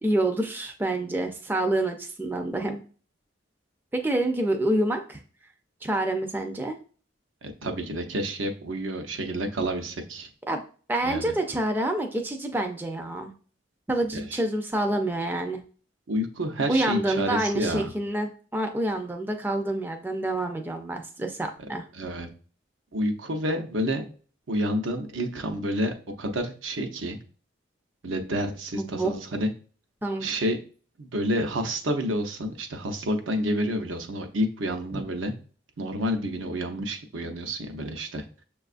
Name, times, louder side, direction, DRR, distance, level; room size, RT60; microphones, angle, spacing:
voice 1, 0.0-2.8 3.9-5.2 5.8-6.8 10.5-10.6 10.9-13.3 13.9-15.6 16.7-21.8 28.7-29.1 30.0-30.3 34.9-35.0, right 1 dB, 10° right, 4 dB, 0.3 m, -27 dB
voice 2, 7.4-10.3 11.0-11.3 14.1-14.4 16.1-17.9 21.9-22.3 22.9-24.0 24.5-27.2 28.0-29.5 30.2-30.6 31.0-35.3 35.8-38.2, equal, 90° right, 5 dB, 0.7 m, -29 dB
6.5 x 2.3 x 2.4 m, 0.40 s
head